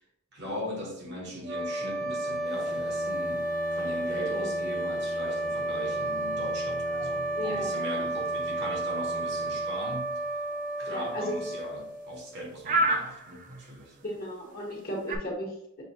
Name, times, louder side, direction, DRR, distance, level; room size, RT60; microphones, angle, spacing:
voice 1, 0.3-10.1 10.8-14.0, equal, 55° right, 0.9 m, -39 dB
sound 1, 1.4-12.4, right 1 dB, 90° right, 1.0 m, -32 dB
sound 2, 2.4-15.2, right 1 dB, 40° right, 0.3 m, -38 dB
Bowed string instrument, 2.5-10.5, left 1 dB, 25° left, 0.6 m, -45 dB
voice 2, 7.3-7.8 10.8-11.5 14.0-15.8, equal, 45° left, 1.1 m, -35 dB
6.4 x 2.2 x 2.7 m
head